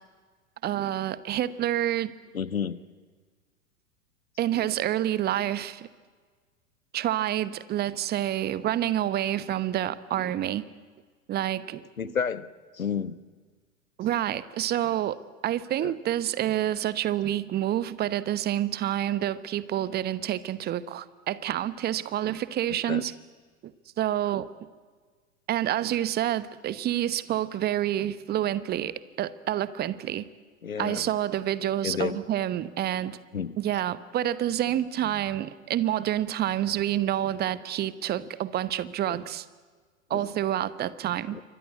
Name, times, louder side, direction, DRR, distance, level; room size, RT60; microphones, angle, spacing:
voice 1, 0.6-2.1 4.4-5.9 6.9-10.6 11.3-12.1 14.0-23.1 23.6-24.5 25.5-30.3 30.8-33.2 33.6-39.4 40.1-41.4, right 12 dB, 25° right, 16 dB, 1.0 m, -28 dB
voice 2, 2.3-2.8 12.0-12.5 12.7-13.2 15.8-15.9 22.7-23.0 30.6-31.1 31.8-32.2 33.3-33.6 40.1-40.3 41.3-41.4, left 7 dB, 80° left, 16 dB, 1.2 m, -31 dB
28.0 x 24.0 x 8.3 m, 1.5 s
figure-of-eight pair, 95°, 41 cm